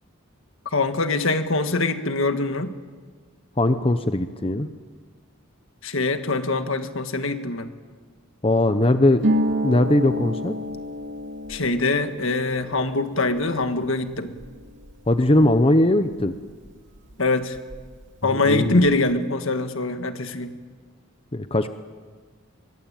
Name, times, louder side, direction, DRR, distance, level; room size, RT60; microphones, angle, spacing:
voice 1, 0.7-2.7 5.8-7.7 11.5-14.3 17.2-17.6 18.2-20.5, left 2 dB, 70° left, 8 dB, 1.7 m, -23 dB
voice 2, 3.6-4.7 8.4-9.3 9.6-10.5 15.1-16.3 18.3-18.8 21.3-21.7, left 1 dB, 25° left, 9 dB, 0.8 m, -20 dB
Harp, 9.2-16.7 17.0-18.1 18.3-19.0, equal, 60° right, 2.9 m, -31 dB
23.0 x 22.5 x 8.9 m, 1.6 s
head